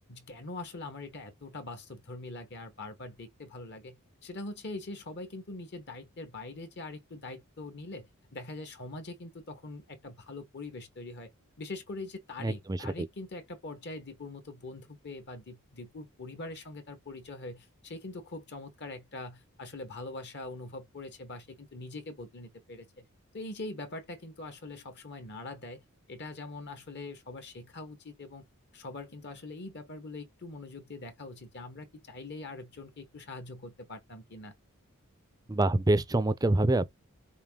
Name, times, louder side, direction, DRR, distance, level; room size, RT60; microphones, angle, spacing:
voice 1, 0.1-4.0 4.2-11.3 11.6-23.1 23.3-25.8 26.1-28.4 28.7-34.5, left 2 dB, 50° left, 1.1 m, -43 dB
voice 2, 12.4-13.1 35.5-36.9, right 2 dB, 15° right, 0.5 m, -26 dB
5.1 x 2.6 x 3.6 m
head